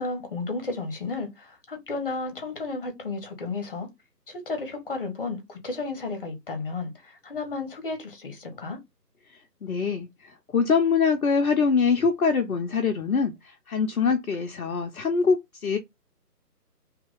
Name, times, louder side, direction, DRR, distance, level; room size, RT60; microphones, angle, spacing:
voice 1, 0.0-3.9 4.3-8.8, left 3 dB, 35° left, 1.0 m, -33 dB
voice 2, 9.6-15.8, left 5 dB, 60° left, 0.7 m, -24 dB
2.9 x 2.5 x 3.7 m
figure-of-eight pair, 150°, 48 cm